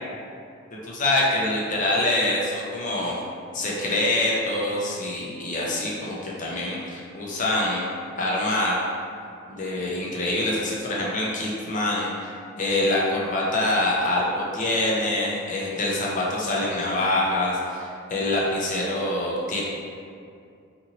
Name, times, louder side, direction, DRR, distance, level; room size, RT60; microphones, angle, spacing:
voice 1, 0.8-3.2 3.5-7.8 8.2-8.9 9.5-12.3 12.6-19.6, left 1 dB, 35° left, -4 dB, 0.5 m, -25 dB
2.8 x 2.6 x 2.6 m, 2.4 s
head